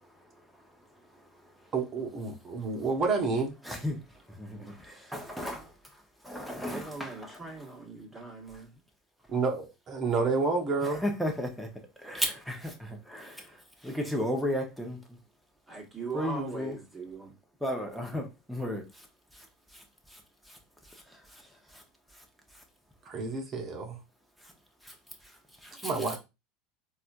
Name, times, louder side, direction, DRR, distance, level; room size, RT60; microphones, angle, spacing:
voice 1, 1.7-3.5 9.3-11.0 23.1-24.0 25.8-26.2, right 4 dB, 35° right, 1.0 m, -29 dB
voice 2, 3.6-4.0 4.3-5.7 6.2-7.1 10.8-11.7 12.0-15.0 16.1-16.7 17.6-19.1 19.3-19.5 19.7-19.8 20.1-20.2 20.5-20.6 20.9-21.4 21.7-21.8 24.8-24.9 25.6-26.2, left 1 dB, ahead, 1.1 m, -34 dB
voice 3, 6.7-8.8 15.7-17.3, right 4 dB, 15° right, 1.5 m, -40 dB
4.2 x 2.4 x 2.6 m
hypercardioid pair, 90°, 0 cm